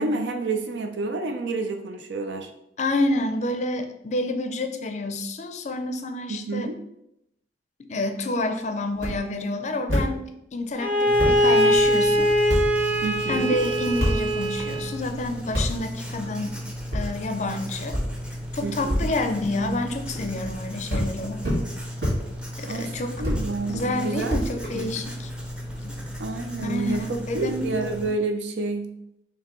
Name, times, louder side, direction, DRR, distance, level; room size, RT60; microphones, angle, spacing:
voice 1, 0.0-2.5 6.3-6.7 13.0-13.6 18.6-19.1 22.7-22.9 23.2-24.4 24.7-25.0 26.2-27.1 27.3-28.9, right 3 dB, 85° right, 5 dB, 0.6 m, -29 dB
voice 2, 2.8-6.7 7.8-10.2 10.5-12.3 13.3-16.6 16.9-18.0 18.5-21.5 22.6-25.3 25.8-26.0 26.6-27.7, left 2 dB, 40° left, 7 dB, 0.4 m, -28 dB
sound 1, 8.9-9.1 9.9-10.1 10.8-10.9 11.2-11.3 12.5-12.6 14.0-14.1 15.5-15.7 16.9-17.0 17.9-18.0 18.9-19.0 20.1-20.5 20.9-21.1 21.4-21.6 22.0-22.1 23.2-23.4 24.3-25.0, equal, 65° right, 1.6 m, -25 dB
Bowed string instrument, 10.8-15.0, equal, 40° right, 1.2 m, -22 dB
Writing, 11.1-28.1, equal, 5° right, 0.5 m, -36 dB
4.6 x 2.9 x 3.7 m, 0.82 s
head